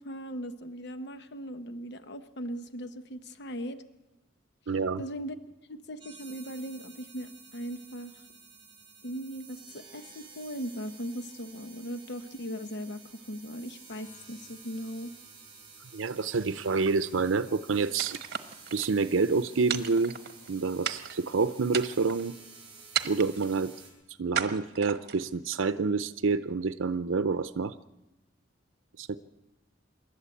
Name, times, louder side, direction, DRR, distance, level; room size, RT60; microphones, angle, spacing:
voice 1, 0.0-3.8 5.0-5.4 5.7-8.2 9.0-15.1, equal, 60° left, 10 dB, 0.9 m, -39 dB
voice 2, 4.7-5.0 15.9-18.2 18.7-20.1 20.5-22.3 23.0-23.7 24.2-27.7 29.0-29.2, right 4 dB, 90° right, 11 dB, 0.6 m, -28 dB
sound 1, 6.0-23.9, right 5 dB, 25° right, 7.3 m, -52 dB
sound 2, 18.0-18.9 19.7-20.5 20.8-21.3 21.7-22.3 22.9-23.5 24.3-25.3, right 8 dB, 55° right, 1.2 m, -34 dB
27.5 x 12.0 x 8.4 m, 1.0 s
head